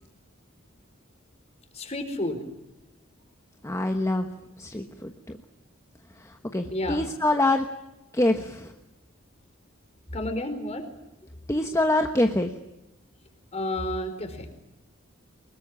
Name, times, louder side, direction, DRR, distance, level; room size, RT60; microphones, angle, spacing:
voice 1, 1.7-2.5 6.7-7.0 10.1-10.9 13.5-14.5, left 1 dB, 30° left, 8 dB, 4.4 m, -30 dB
voice 2, 3.6-4.3 4.6-5.1 6.2-7.7 8.1-8.7 11.5-12.5, left 1 dB, 15° left, 5 dB, 1.2 m, -25 dB
24.0 x 21.5 x 9.8 m, 0.93 s
head